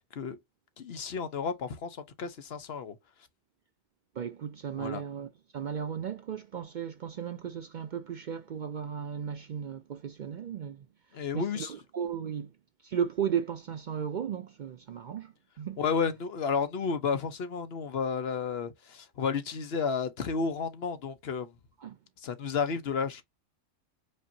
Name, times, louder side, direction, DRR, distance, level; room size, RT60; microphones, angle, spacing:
voice 1, 0.8-3.0 4.8-5.0 11.1-11.7 15.8-21.5 22.2-23.2, left 5 dB, 55° left, 1.0 m, -32 dB
voice 2, 4.2-10.9 11.3-12.5 12.8-15.8 21.8-22.0, right 8 dB, 75° right, 0.4 m, -35 dB
5.2 x 2.7 x 2.6 m
omnidirectional pair, 1.4 m